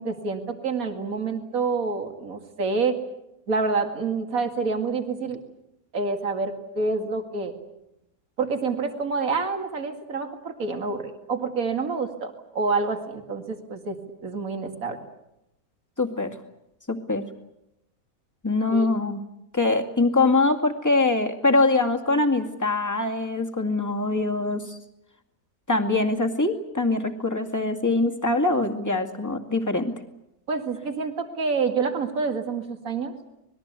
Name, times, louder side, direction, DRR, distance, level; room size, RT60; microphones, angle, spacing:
voice 1, 0.0-3.0 3.5-5.4 5.9-7.5 8.4-14.0 14.2-15.0 18.7-18.9 30.5-33.1, right 4 dB, 65° right, 5 dB, 2.6 m, -27 dB
voice 2, 16.0-16.3 16.9-17.2 18.4-19.2 19.5-24.8 25.7-29.9, left 2 dB, 10° left, 4 dB, 2.1 m, -23 dB
26.0 x 21.0 x 8.3 m, 0.86 s
omnidirectional pair, 1.6 m